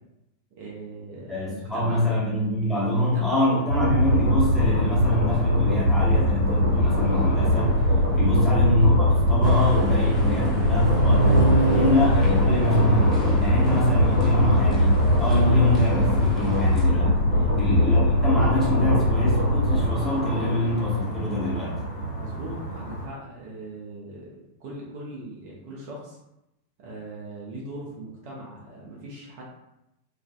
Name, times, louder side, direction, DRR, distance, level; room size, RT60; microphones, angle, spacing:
voice 1, 0.6-2.1 2.8-3.7 17.3-17.6 22.1-26.2 26.8-29.4, right 1 dB, 45° right, -4 dB, 0.6 m, -40 dB
voice 2, 1.3-7.8 8.1-17.2 17.6-21.8, left 1 dB, 5° left, -8 dB, 1.2 m, -25 dB
sound 1, 3.7-19.8, left 1 dB, 75° right, 1.2 m, -21 dB
sound 2, 4.0-23.1, right 2 dB, 70° left, 1.0 m, -29 dB
sound 3, 9.4-16.9, left 2 dB, 25° left, 0.6 m, -33 dB
2.5 x 2.4 x 2.3 m, 0.88 s
figure-of-eight pair, 90°, 0 cm